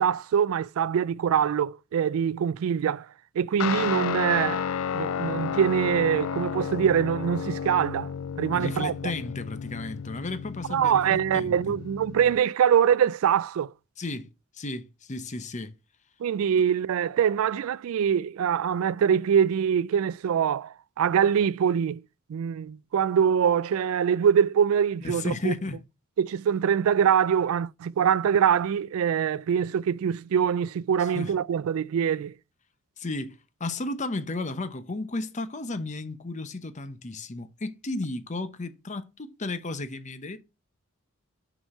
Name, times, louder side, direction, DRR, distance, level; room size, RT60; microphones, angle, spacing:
voice 1, 0.0-3.1 3.4-4.7 4.9-8.1 8.4-8.9 10.7-13.7 16.2-22.0 22.3-25.5 26.2-32.3, right 8 dB, 70° right, 0.3 m, -24 dB
Guitar, 3.6-12.4, left 7 dB, 70° left, 0.4 m, -32 dB
voice 2, 8.5-11.8 14.0-14.3 14.5-15.7 25.0-25.8 31.0-31.3 33.0-40.4, left 2 dB, 35° left, 0.8 m, -34 dB
6.1 x 4.9 x 5.4 m
head